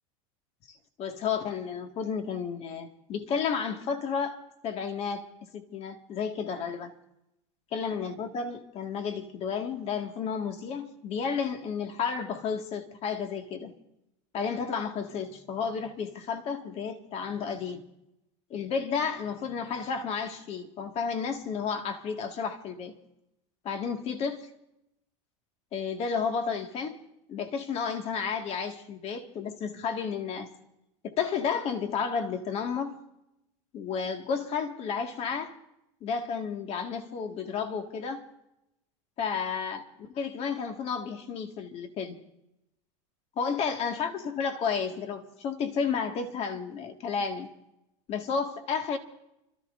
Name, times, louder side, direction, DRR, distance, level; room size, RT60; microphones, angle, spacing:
voice 1, 0.7-6.9 7.7-13.7 14.3-17.8 18.5-23.0 23.6-24.5 25.7-27.0 27.3-30.5 31.0-32.9 33.7-35.6 36.0-38.3 39.2-42.2 43.4-47.5 48.1-49.0, left 6 dB, 40° left, 2.0 m, -32 dB
30.0 x 14.0 x 2.6 m
supercardioid pair, 125°, 16 cm